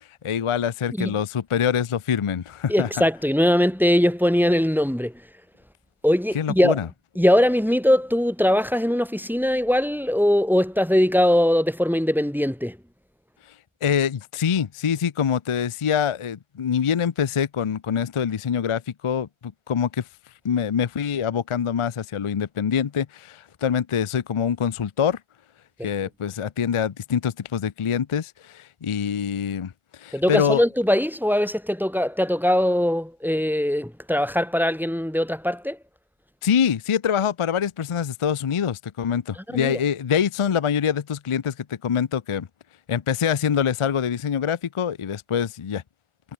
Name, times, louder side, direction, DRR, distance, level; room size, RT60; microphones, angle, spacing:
voice 1, 0.0-2.9 6.3-6.9 13.8-20.0 20.4-25.2 25.8-29.7 30.0-30.6 36.4-42.5 42.9-45.8, left 7 dB, 50° left, 0.3 m, -25 dB
voice 2, 2.7-5.1 6.0-6.8 7.1-12.8 25.8-25.9 30.1-35.8 39.4-39.8, equal, ahead, 1.6 m, -21 dB
omnidirectional pair, 1.2 m